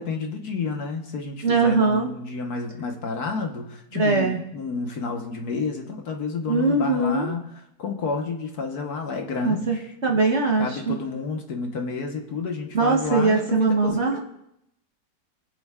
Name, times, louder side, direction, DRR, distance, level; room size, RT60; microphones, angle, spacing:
voice 1, 0.0-7.5 7.8-9.9 10.6-14.2, left 4 dB, 65° left, 2 dB, 1.7 m, -30 dB
voice 2, 1.4-2.1 3.9-4.4 6.5-7.3 9.4-9.8 10.0-11.0 12.7-14.2, right 3 dB, 45° right, 1 dB, 1.3 m, -21 dB
23.0 x 7.7 x 2.4 m, 0.80 s
omnidirectional pair, 1.8 m